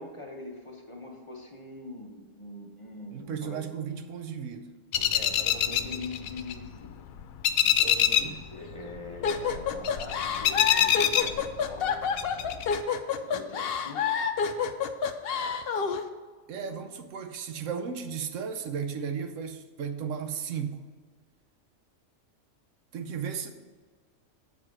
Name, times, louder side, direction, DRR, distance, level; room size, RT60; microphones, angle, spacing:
voice 1, 0.0-3.6 4.9-6.9 7.6-12.6 13.2-14.2 16.5-16.8, left 2 dB, 25° left, 0 dB, 1.0 m, -43 dB
voice 2, 3.1-4.7 7.8-8.4 16.5-20.8 22.9-23.5, right 7 dB, 75° right, 7 dB, 1.0 m, -35 dB
sound 1, 4.9-6.9 7.2-8.4 8.7-11.9 12.2-12.8, left 10 dB, 90° left, 1.0 m, -25 dB
sound 2, 9.2-16.0, left 6 dB, 60° left, 0.7 m, -28 dB
7.4 x 4.8 x 6.0 m, 1.5 s
omnidirectional pair, 1.4 m